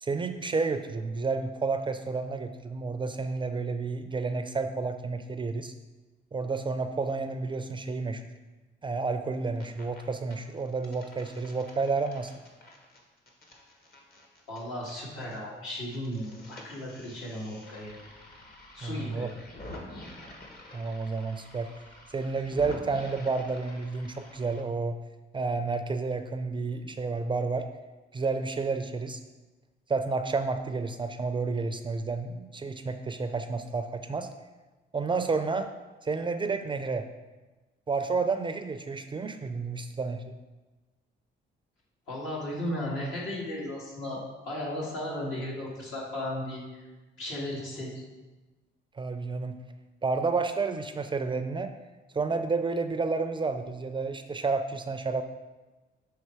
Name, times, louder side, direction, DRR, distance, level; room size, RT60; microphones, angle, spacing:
voice 1, 0.0-5.7 6.3-8.2 8.8-12.3 18.8-19.3 20.7-21.7 22.1-25.0 25.3-27.7 28.1-29.2 29.9-34.3 34.9-35.7 36.0-37.1 37.9-40.3 49.0-49.6 50.0-51.7 52.1-55.2, right 4 dB, 25° right, 8 dB, 0.4 m, -30 dB
sound 1, 9.3-10.0 10.3-15.4 15.6-24.6, left 1 dB, 50° left, 1.2 m, -48 dB
voice 2, 14.5-18.0 18.7-19.3 42.1-44.2 44.4-46.8 47.2-48.0, left 1 dB, 75° left, -4 dB, 2.0 m, -35 dB
6.6 x 3.3 x 4.6 m, 1.2 s
cardioid pair, 90°, 20 cm